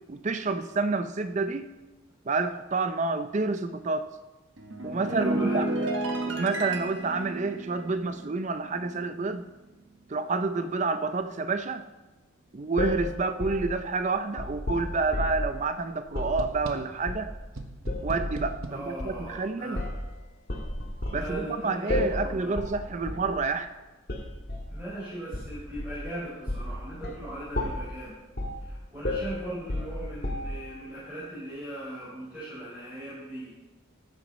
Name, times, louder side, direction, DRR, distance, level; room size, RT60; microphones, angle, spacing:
voice 1, 0.1-1.7 2.3-4.1 4.8-5.7 6.3-9.5 10.1-11.8 12.5-17.3 18.0-19.8 21.1-23.7, right 3 dB, 35° right, 10 dB, 0.4 m, -29 dB
sound 1, 4.6-9.2 9.5-9.8, right 2 dB, 60° right, 1.3 m, -32 dB
voice 2, 5.1-5.9 18.7-19.9 21.1-22.6 24.7-28.2 28.6-33.5, right 1 dB, 10° right, -11 dB, 4.5 m, -39 dB
sound 2, 12.8-15.5 16.1-16.4 17.1-17.5 17.9-18.5 19.0-19.2 19.8-20.1 20.5-21.3 21.9-22.3 22.6-22.8 23.1-23.3 24.1-24.7 25.3-26.1 26.5-26.7 27.0-27.2 27.5-27.9 28.4-28.6 29.0-30.7, left 1 dB, 45° left, 1.9 m, -32 dB
sound 3, 16.4-17.1 17.5-18.9, right 2 dB, 80° right, 1.2 m, -39 dB
13.0 x 9.2 x 4.1 m, 1.1 s
head